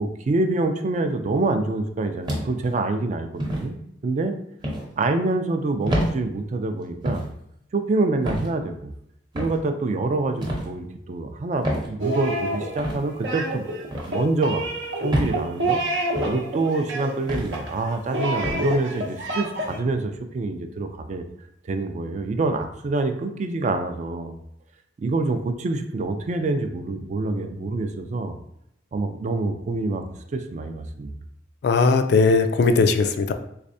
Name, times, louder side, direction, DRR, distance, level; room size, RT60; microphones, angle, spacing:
voice 1, 0.0-4.4 5.0-7.3 7.7-8.9 9.3-13.7 14.1-14.6 15.0-15.8 16.2-21.2 21.6-24.4 25.0-28.3 28.9-30.1 30.3-31.1, right 3 dB, 40° right, 7 dB, 0.3 m, -26 dB
sound 1, 2.3-2.7 3.4-3.7 4.6-4.9 5.9-6.1 7.0-7.3 8.3-8.5 9.3-9.6 10.4-10.7 11.6-11.9 12.8-13.0 13.9-14.1 15.1-15.4 16.1-16.4 17.3-17.5 18.4-18.6, equal, 25° right, 0.7 m, -26 dB
sound 2, 12.0-19.8, right 1 dB, 75° right, 0.7 m, -28 dB
voice 2, 31.6-33.3, left 4 dB, 60° left, 8 dB, 0.3 m, -18 dB
3.4 x 3.2 x 2.6 m, 0.74 s
head